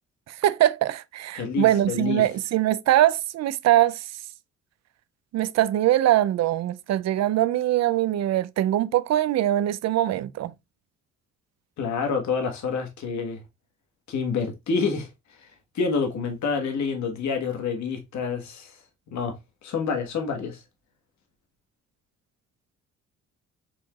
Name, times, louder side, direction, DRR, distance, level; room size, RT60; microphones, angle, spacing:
voice 1, 0.4-4.1 5.3-10.5, right 13 dB, 60° right, 0.5 m, -22 dB
voice 2, 1.3-2.2 11.8-13.4 14.1-15.1 15.7-18.7 19.1-19.4 19.6-20.6, left 5 dB, 70° left, 1.4 m, -27 dB
4.6 x 4.4 x 2.3 m
cardioid pair, 90°, 30 cm